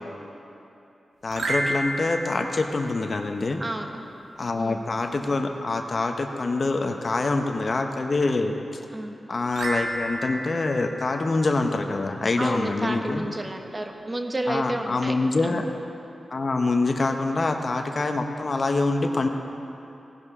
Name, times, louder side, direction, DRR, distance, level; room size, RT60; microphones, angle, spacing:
voice 1, 1.2-3.6 4.4-8.5 9.3-13.2 14.5-15.7 16.3-19.3, left 3 dB, 55° left, 5 dB, 1.0 m, -25 dB
sound 1, 1.3-3.8 9.5-12.1, right 1 dB, 85° right, 0.9 m, -32 dB
voice 2, 3.6-4.0 4.6-4.8 8.9-9.2 12.4-15.1 15.4-15.6, right 1 dB, 35° right, 4 dB, 1.2 m, -31 dB
18.0 x 10.5 x 3.7 m, 2.8 s
cardioid pair, 45°, 0 cm